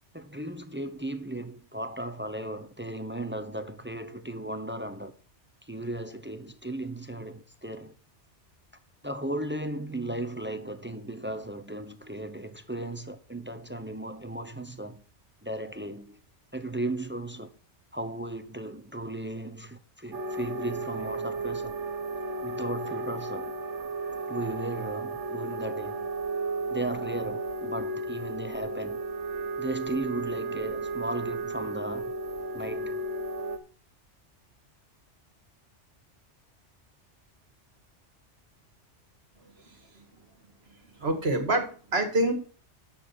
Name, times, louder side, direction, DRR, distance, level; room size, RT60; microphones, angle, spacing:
voice 1, 0.1-5.1 5.6-7.9 9.0-15.0 15.4-16.2 16.5-17.5 17.9-21.7 22.4-23.5 24.3-26.1 26.7-29.0 29.6-32.1 32.5-33.0, right 1 dB, 10° right, 0.6 m, -36 dB
sound 1, 20.1-33.6, right 3 dB, 85° right, 1.3 m, -34 dB
voice 2, 39.6-40.0 41.0-42.3, right 1 dB, 60° right, 2.2 m, -27 dB
10.5 x 7.3 x 4.3 m
omnidirectional pair, 1.2 m